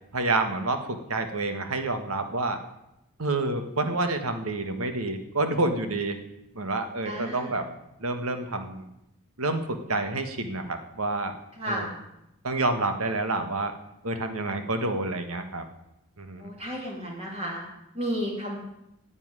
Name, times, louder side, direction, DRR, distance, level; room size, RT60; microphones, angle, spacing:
voice 1, 0.1-2.6 3.2-6.2 6.5-7.7 8.0-8.8 9.4-11.4 11.7-11.9 12.4-13.7 14.0-15.7 16.2-16.5, right 2 dB, 80° right, 7 dB, 1.7 m, -28 dB
voice 2, 7.0-7.6 11.6-11.9 16.4-17.6 17.9-18.7, equal, 30° right, -2 dB, 3.2 m, -32 dB
10.0 x 8.4 x 9.8 m, 0.87 s
head